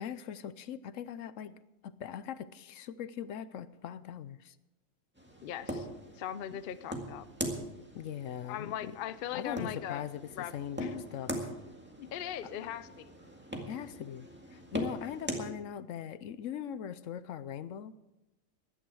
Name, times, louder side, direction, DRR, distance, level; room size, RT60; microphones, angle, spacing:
voice 1, 0.0-1.6 1.8-4.5 7.9-9.0 9.3-10.8 11.1-11.3 13.7-17.9, left 9 dB, 75° left, 15 dB, 1.0 m, -40 dB
sound 1, 5.2-15.5, equal, 10° right, 1.8 m, -41 dB
voice 2, 5.4-5.9 6.2-7.3 8.5-10.0 10.3-10.5 10.8-11.0 12.0-13.1, left 10 dB, 55° left, 14 dB, 0.6 m, -39 dB
16.5 x 11.5 x 4.8 m, 0.96 s
omnidirectional pair, 1.4 m